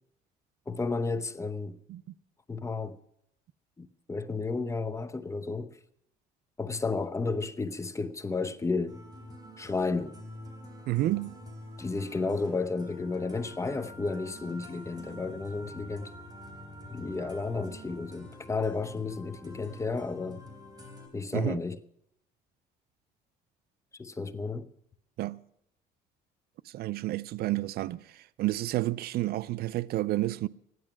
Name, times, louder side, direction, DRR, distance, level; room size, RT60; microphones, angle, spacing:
voice 1, 0.7-1.8 2.5-3.0 3.8-5.8 6.6-9.0 9.6-10.1 11.8-16.1 16.9-20.4 21.1-21.8 24.0-24.7, left 3 dB, 15° left, 0.9 m, -32 dB
sound 1, 8.9-21.1, left 1 dB, 25° right, 3.9 m, -47 dB
voice 2, 10.9-11.3 21.3-21.6 25.2-25.4 26.7-30.5, right 16 dB, 65° right, 0.5 m, -30 dB
15.0 x 11.0 x 6.0 m
cardioid pair, 110°, 17 cm